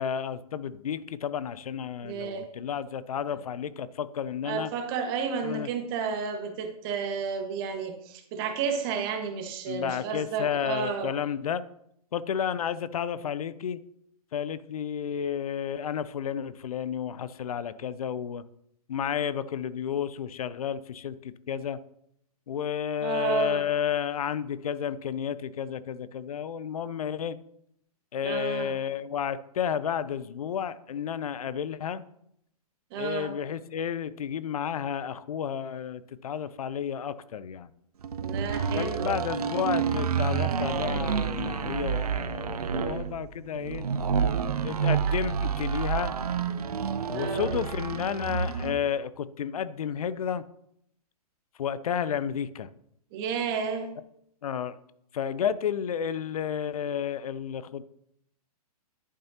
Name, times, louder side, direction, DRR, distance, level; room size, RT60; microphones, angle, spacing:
voice 1, 0.0-4.7 5.4-5.7 9.7-11.6 12.1-13.8 14.3-18.4 18.9-21.8 22.5-27.4 28.1-32.0 32.9-37.7 38.7-43.9 44.6-46.1 47.1-50.4 51.6-52.7 54.4-54.8 55.1-57.8, left 8 dB, 65° left, 16 dB, 0.6 m, -31 dB
voice 2, 2.0-2.5 4.4-11.1 23.0-23.7 28.2-28.7 32.9-33.3 38.2-39.1 45.1-45.2 47.1-47.5 53.1-53.9, right 6 dB, 40° right, 5 dB, 1.5 m, -31 dB
sound 1, 38.0-48.8, right 6 dB, 70° right, 0.8 m, -29 dB
11.0 x 8.6 x 2.9 m, 0.75 s
hypercardioid pair, 120°, 20 cm